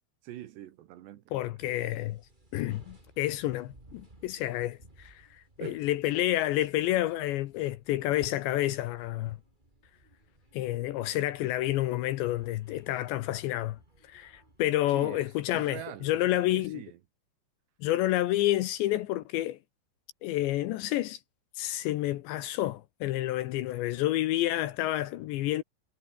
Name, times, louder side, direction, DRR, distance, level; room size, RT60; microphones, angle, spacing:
voice 1, 0.2-1.2 1.6-1.8 5.6-5.8 14.9-17.0, right 13 dB, 70° right, 3.0 m, -44 dB
voice 2, 1.3-2.2 2.5-9.4 10.5-13.8 14.1-16.8 17.8-19.6 20.2-21.2 21.6-25.6, left 15 dB, 75° left, 2.9 m, -29 dB
sound 1, 1.6-14.7, right 1 dB, 10° right, 3.7 m, -60 dB
omnidirectional pair, 5.8 m